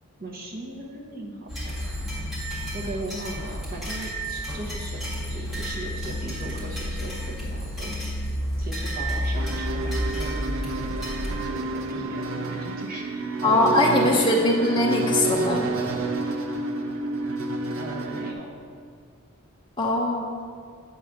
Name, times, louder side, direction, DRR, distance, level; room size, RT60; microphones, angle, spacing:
voice 1, 0.2-2.3 2.6-8.0 8.6-14.4 17.7-18.5, right 1 dB, 40° right, -1 dB, 1.0 m, -38 dB
sound 1, 1.5-11.3, equal, ahead, 1.7 m, -31 dB
sound 2, 9.3-18.3, right 3 dB, 70° right, 0.5 m, -29 dB
voice 2, 13.4-15.7 19.8-20.3, left 1 dB, 20° left, -2 dB, 0.6 m, -21 dB
8.0 x 3.6 x 6.1 m, 2.1 s
head